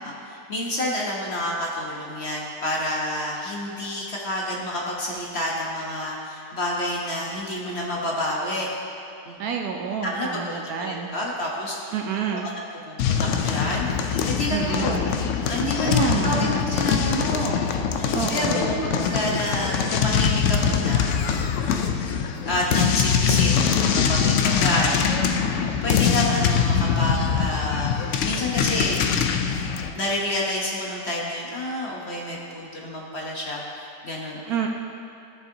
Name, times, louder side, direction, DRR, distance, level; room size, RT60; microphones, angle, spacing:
voice 1, 0.0-8.7 9.3-9.4 10.0-12.0 12.3-12.4 12.8-13.0 13.4-15.0 15.4-21.0 21.7-27.9 28.2-29.0 29.9-34.4, left 1 dB, 45° left, -3 dB, 1.0 m, -29 dB
voice 2, 9.4-11.2 11.9-12.5 14.5-15.1 15.8-16.6 18.1-18.9 19.3-19.4 34.5-34.7, right 7 dB, 70° right, 2 dB, 1.0 m, -28 dB
sound 1, 13.0-29.9, left 7 dB, 90° left, 0.6 m, -23 dB
14.0 x 7.0 x 2.7 m, 2.7 s
omnidirectional pair, 1.8 m